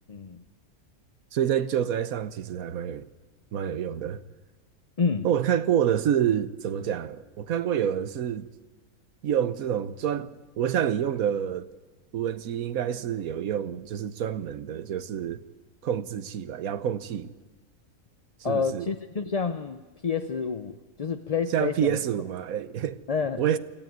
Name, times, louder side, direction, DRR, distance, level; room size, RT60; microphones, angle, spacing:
voice 1, 0.1-0.4 5.0-5.3 18.4-22.0 23.1-23.4, left 5 dB, 40° left, 0.6 m, -29 dB
voice 2, 1.3-3.1 3.5-4.2 5.2-8.5 9.2-11.7 12.1-15.4 15.8-17.3 18.4-18.9 21.5-23.0 23.4-23.6, right 9 dB, 80° right, 1.3 m, -27 dB
24.5 x 14.0 x 9.3 m
omnidirectional pair, 1.5 m